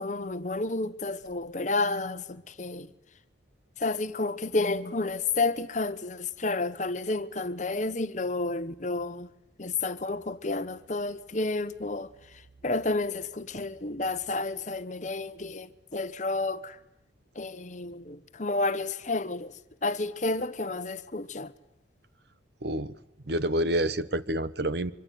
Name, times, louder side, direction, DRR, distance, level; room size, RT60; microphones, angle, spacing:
voice 1, 0.0-2.9 3.8-9.3 9.6-12.1 12.6-16.7 17.4-19.5 19.8-21.5, left 3 dB, 40° left, 1.1 m, -30 dB
voice 2, 22.6-22.9 23.3-24.9, right 1 dB, 55° right, 1.1 m, -28 dB
25.0 x 24.5 x 9.3 m
head